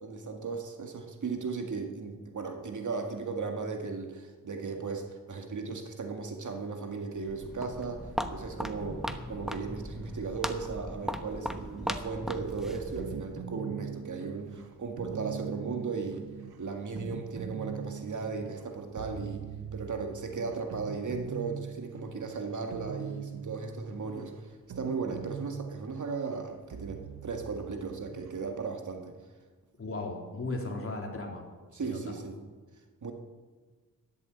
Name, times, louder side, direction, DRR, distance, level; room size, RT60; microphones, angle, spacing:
voice 1, 0.0-16.3 16.6-19.5 19.7-24.3 24.8-29.2 31.7-32.4 33.0-33.1, right 4 dB, 55° right, 4 dB, 2.0 m, -36 dB
Walk footsteps, 7.1-13.3, equal, ahead, 1.0 m, -38 dB
sound 1, 12.2-28.4, right 7 dB, 85° right, 1.3 m, -42 dB
voice 2, 29.8-31.4 31.8-32.0, left 2 dB, 35° left, 0 dB, 3.5 m, -36 dB
13.0 x 11.0 x 8.1 m, 1.4 s
cardioid pair, 90°, 37 cm